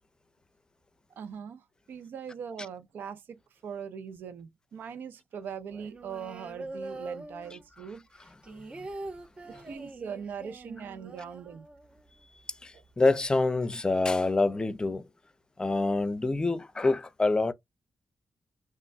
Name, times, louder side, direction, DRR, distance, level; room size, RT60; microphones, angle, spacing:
voice 1, 1.2-8.1 9.5-11.7 12.7-12.8, right 7 dB, 85° right, 0.4 m, -41 dB
sound 1, 5.7-7.8 8.1-12.1 12.4-12.5 12.7-13.3, right 2 dB, 35° right, 0.6 m, -43 dB
voice 2, 13.0-15.0 15.6-17.5, left 3 dB, 25° left, 0.5 m, -26 dB
3.3 x 2.1 x 2.5 m
cardioid pair, 75°, 3 cm